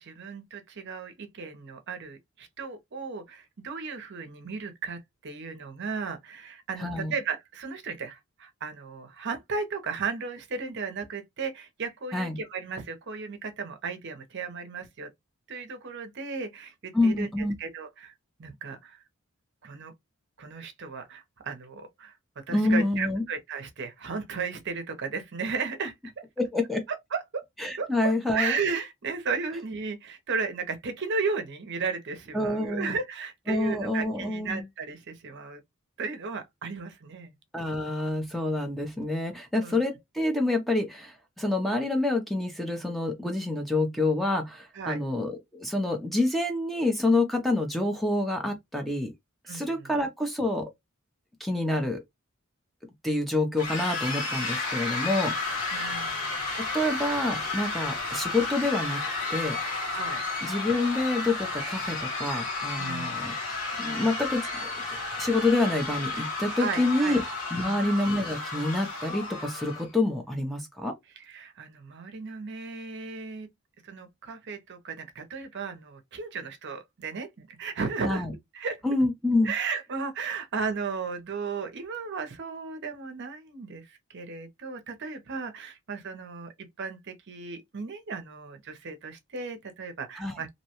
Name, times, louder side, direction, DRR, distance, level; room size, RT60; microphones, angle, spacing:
voice 1, 0.0-15.1 15.5-17.3 17.6-18.1 18.4-19.0 19.6-19.9 20.4-22.2 22.5-25.9 27.1-27.2 27.8-35.6 36.0-37.4 39.6-39.8 44.7-45.0 49.4-49.9 55.7-56.5 59.9-60.2 62.8-63.2 66.5-67.2 67.6-67.8 71.2-73.5 73.8-78.3 78.5-78.8 79.4-90.5, right 5 dB, 50° right, 0.6 m, -35 dB
voice 2, 6.8-7.1 12.1-12.4 16.9-17.6 22.5-23.2 26.4-26.8 27.6-28.6 32.3-33.0 33.5-34.6 37.5-49.1 49.5-50.7 51.4-52.0 53.0-55.6 56.7-59.6 60.4-63.3 63.8-64.7 65.2-67.2 67.5-70.9 78.0-78.3 78.8-79.5 90.2-90.3, left 2 dB, ahead, 0.5 m, -27 dB
sound 1, 53.6-69.9, left 3 dB, 80° left, 1.2 m, -32 dB
2.7 x 2.1 x 2.8 m
head